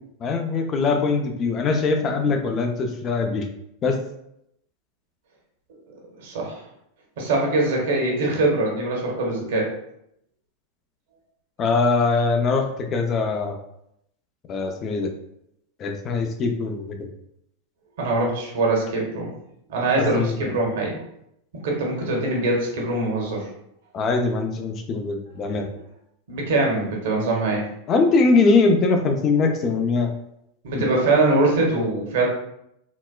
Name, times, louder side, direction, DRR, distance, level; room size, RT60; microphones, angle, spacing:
voice 1, 0.2-3.5 3.8-4.0 11.6-13.6 14.5-15.1 15.8-17.1 20.0-20.5 23.9-25.7 27.9-30.1 30.7-30.9, left 4 dB, 35° left, 5 dB, 0.5 m, -22 dB
voice 2, 6.2-6.6 7.2-9.7 18.0-19.3 19.7-21.0 21.6-23.5 26.3-27.6 30.6-32.3, right 2 dB, 70° right, -1 dB, 1.0 m, -23 dB
4.0 x 2.2 x 2.2 m, 0.78 s
hypercardioid pair, 100°, 0 cm